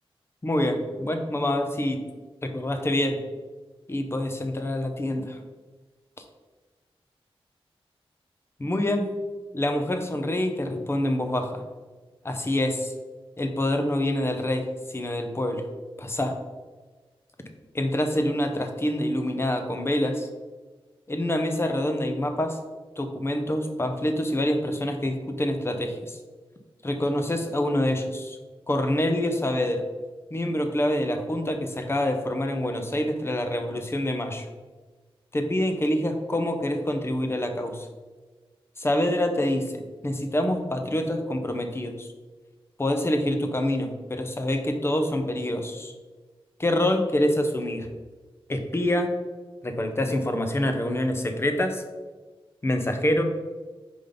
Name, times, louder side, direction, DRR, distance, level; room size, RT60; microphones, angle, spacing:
voice 1, 0.4-2.0 2.4-3.2 3.9-5.4 8.6-9.1 9.5-11.6 12.2-12.9 13.4-14.6 14.9-15.6 16.0-16.3 17.7-20.3 21.1-22.6 23.0-26.2 26.8-28.4 28.7-29.8 30.3-34.4 35.3-37.9 38.8-39.7 40.0-42.1 42.8-45.9 46.6-47.9 48.5-49.1 49.6-51.8 52.6-53.2, left 1 dB, 25° left, 6 dB, 0.8 m, -26 dB
5.2 x 5.1 x 3.9 m, 1.3 s
wide cardioid pair, 110°, 10 cm